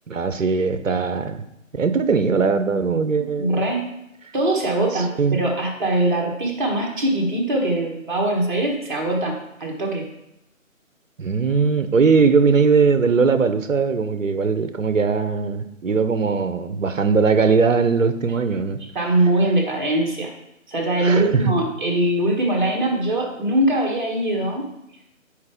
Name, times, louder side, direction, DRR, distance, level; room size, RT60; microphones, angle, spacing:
voice 1, 0.1-1.4 1.7-3.6 4.9-5.4 11.2-18.8 21.0-21.5, right 5 dB, 70° right, 10 dB, 0.8 m, -20 dB
voice 2, 3.2-3.8 4.3-10.1 18.9-20.3 20.7-24.7, right 1 dB, 35° right, 0 dB, 1.5 m, -22 dB
9.5 x 4.4 x 3.6 m, 0.85 s
figure-of-eight pair, 155°, 41 cm